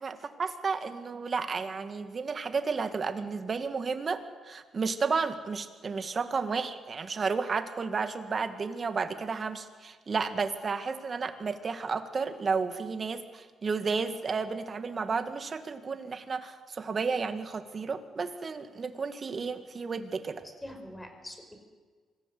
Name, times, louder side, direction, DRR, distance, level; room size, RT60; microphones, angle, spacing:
voice 1, 0.0-20.4, right 5 dB, 40° right, 8 dB, 1.9 m, -32 dB
voice 2, 20.4-21.6, left 1 dB, 10° left, 5 dB, 4.7 m, -44 dB
25.0 x 15.5 x 7.9 m, 1.5 s
cardioid pair, 90°, 0 cm